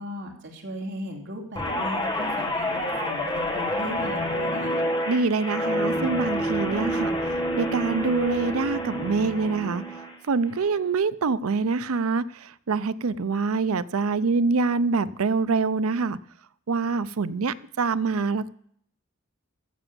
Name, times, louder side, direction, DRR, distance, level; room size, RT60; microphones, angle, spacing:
voice 1, 0.0-4.8, equal, 60° right, 2.8 m, -37 dB
Guitar, 1.6-10.1 10.5-10.9, equal, 20° left, 1.7 m, -28 dB
voice 2, 5.1-16.2 16.7-18.5, right 4 dB, 90° right, 0.5 m, -25 dB
14.5 x 6.9 x 6.9 m
head